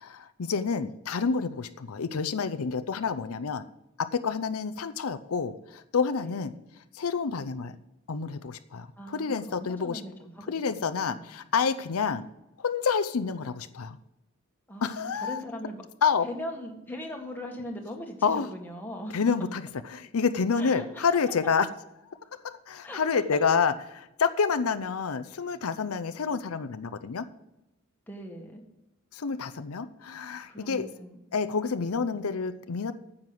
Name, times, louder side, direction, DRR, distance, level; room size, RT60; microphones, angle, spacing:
voice 1, 0.0-3.7 4.0-6.5 6.9-7.7 8.1-10.0 10.5-12.3 12.6-14.0 14.8-15.4 16.0-16.3 18.2-18.5 19.1-19.6 19.9-21.7 22.4-23.7 24.2-27.3 29.1-30.9 31.3-32.9, left 5 dB, 85° left, 11 dB, 0.6 m, -28 dB
voice 2, 9.0-11.4 14.7-15.8 16.2-19.2 20.6-21.1 22.8-23.0 28.1-28.6 30.5-31.2, equal, 10° left, 1 dB, 1.6 m, -40 dB
9.7 x 7.3 x 7.7 m, 0.91 s
head